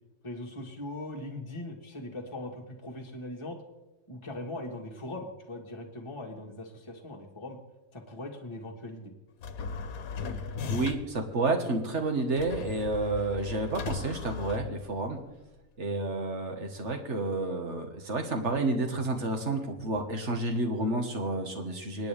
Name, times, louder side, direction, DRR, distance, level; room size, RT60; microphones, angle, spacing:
voice 1, 0.2-3.6 4.1-7.6 7.9-9.1, left 1 dB, 20° left, -1 dB, 1.6 m, -40 dB
sound 1, 9.4-11.2 12.4-15.2, left 5 dB, 80° left, 1.3 m, -37 dB
voice 2, 10.3-15.2 15.8-22.1, right 2 dB, 55° right, 4 dB, 1.9 m, -30 dB
27.0 x 9.3 x 3.5 m, 1.1 s
omnidirectional pair, 1.5 m